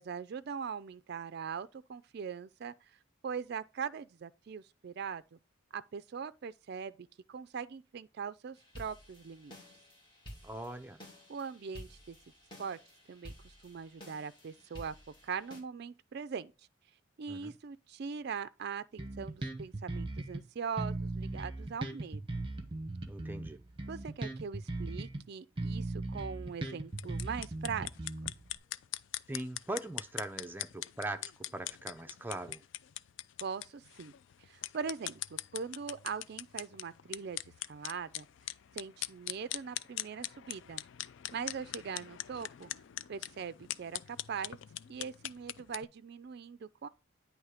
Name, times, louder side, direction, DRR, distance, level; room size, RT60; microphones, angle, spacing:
voice 1, 0.0-5.4 5.7-9.5 11.3-12.2 12.6-12.8 13.1-15.0 15.2-16.5 17.2-22.4 23.9-27.9 33.4-34.1 34.4-37.4 37.7-38.3 38.7-40.8 41.3-42.7 43.1-44.6 44.9-46.9, right 6 dB, 55° right, 0.4 m, -41 dB
sound 1, 8.6-15.6, equal, 25° left, 2.3 m, -52 dB
voice 2, 10.4-11.0 17.3-17.5 23.1-23.6 29.3-32.6, right 1 dB, 10° right, 0.6 m, -41 dB
Bass guitar, 19.0-20.4 20.8-25.2 25.6-28.6, right 2 dB, 25° right, 0.9 m, -38 dB
sound 2, 26.9-45.8, left 14 dB, 65° left, 0.3 m, -42 dB
9.5 x 3.2 x 4.9 m
head